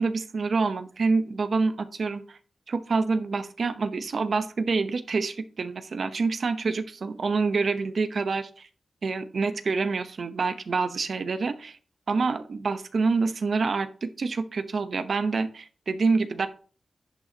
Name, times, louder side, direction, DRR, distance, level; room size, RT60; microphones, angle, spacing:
voice 1, 0.0-2.4 2.7-8.7 9.0-11.8 12.1-16.5, right 4 dB, 70° right, 10 dB, 0.8 m, -27 dB
11.0 x 5.9 x 2.8 m, 0.40 s
wide cardioid pair, 105°, 0 cm